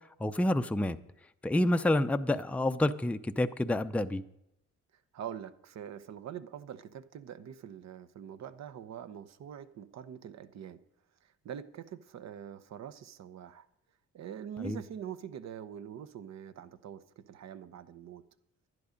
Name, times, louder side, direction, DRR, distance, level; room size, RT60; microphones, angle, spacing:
voice 1, 0.2-1.0 1.4-4.2 14.6-14.8, left 1 dB, 5° left, 0.5 m, -28 dB
voice 2, 5.1-10.8 11.2-13.7 14.1-18.2, right 8 dB, 60° right, 0.9 m, -44 dB
11.0 x 11.0 x 5.1 m
cardioid pair, 90°, 30 cm